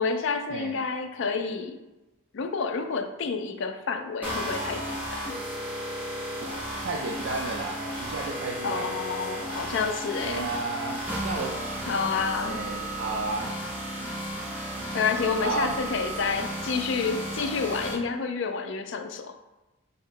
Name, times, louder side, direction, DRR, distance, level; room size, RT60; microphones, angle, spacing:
voice 1, 0.0-1.8 2.3-5.2 8.6-10.5 11.9-12.6 14.9-19.4, left 5 dB, 55° left, 7 dB, 0.4 m, -29 dB
sound 1, 4.2-17.9, right 1 dB, 10° right, 0.7 m, -34 dB
voice 2, 6.8-9.0 10.2-11.5 12.4-13.6 15.4-15.7, right 3 dB, 55° right, 0 dB, 0.4 m, -32 dB
2.9 x 2.8 x 4.4 m, 1.0 s
head